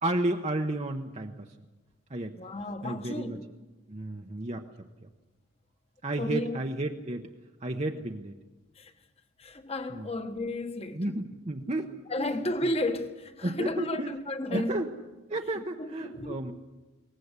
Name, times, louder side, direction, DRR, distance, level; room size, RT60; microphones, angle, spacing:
voice 1, 0.0-1.5 2.1-2.4 2.8-3.4 3.9-4.7 5.0-5.1 6.0-7.3 7.6-8.3 9.9-10.1 10.9-12.3 13.4-14.9 15.3-16.5, right 1 dB, 30° right, 0.9 m, -32 dB
voice 2, 2.3-3.4 6.2-6.6 8.7-8.9 9.4-11.0 12.1-14.8 15.5-16.4, left 1 dB, 30° left, 1.4 m, -33 dB
22.5 x 19.0 x 8.2 m
head